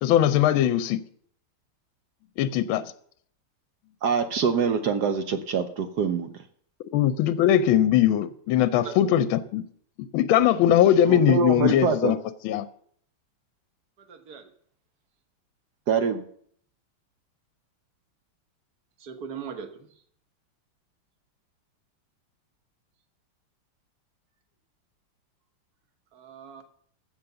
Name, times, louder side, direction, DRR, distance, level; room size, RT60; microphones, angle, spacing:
voice 1, 0.0-1.0 2.4-2.8 6.9-9.6 10.0-12.2 12.4-12.7, left 11 dB, 75° left, 1.3 m, -20 dB
voice 2, 4.0-6.3 11.0-12.1 15.9-16.2, right 6 dB, 70° right, 1.0 m, -25 dB
voice 3, 14.1-14.5 19.0-19.9 26.1-26.6, right 6 dB, 50° right, 1.6 m, -39 dB
14.5 x 5.2 x 6.8 m
omnidirectional pair, 2.4 m